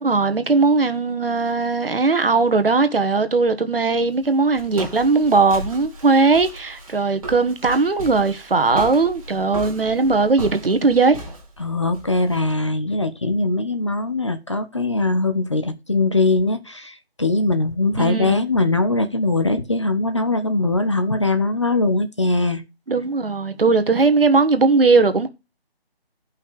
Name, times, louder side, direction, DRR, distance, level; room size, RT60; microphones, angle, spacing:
voice 1, 0.0-11.2 18.0-18.4 22.9-25.3, right 4 dB, 65° right, 1.4 m, -18 dB
Walk footsteps, 3.9-12.5, right 1 dB, 35° right, 2.0 m, -36 dB
voice 2, 11.6-22.6, left 2 dB, 30° left, 0.6 m, -21 dB
12.5 x 5.7 x 4.7 m
figure-of-eight pair, 160°, 31 cm